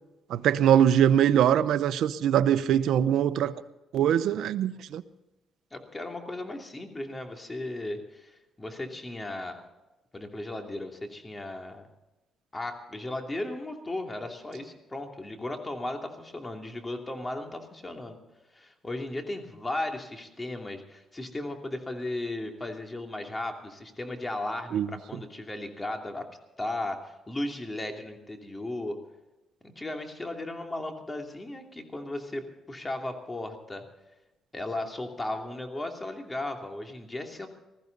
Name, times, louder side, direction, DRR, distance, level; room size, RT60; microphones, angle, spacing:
voice 1, 0.3-3.5 3.9-5.0 24.7-24.9, right 10 dB, 80° right, 12 dB, 0.8 m, -22 dB
voice 2, 5.7-9.6 10.1-11.9 12.5-18.2 18.5-26.3 26.6-29.0 29.6-33.8 34.5-37.5, left 2 dB, 20° left, 3 dB, 2.8 m, -36 dB
20.0 x 15.0 x 4.0 m, 1.0 s
cardioid pair, 90°, 0 cm